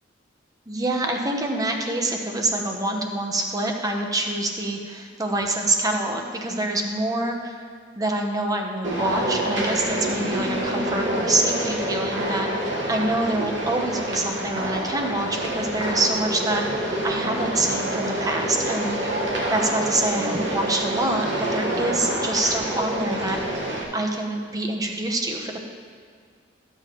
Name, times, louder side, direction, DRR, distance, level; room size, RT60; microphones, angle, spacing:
voice 1, 0.7-7.6 8.0-21.3 21.5-23.4 23.9-25.6, right 2 dB, 20° right, 2 dB, 0.9 m, -26 dB
sound 1, 8.8-23.8, right 1 dB, 90° right, 1.6 m, -27 dB
13.5 x 7.8 x 3.1 m, 2.1 s
head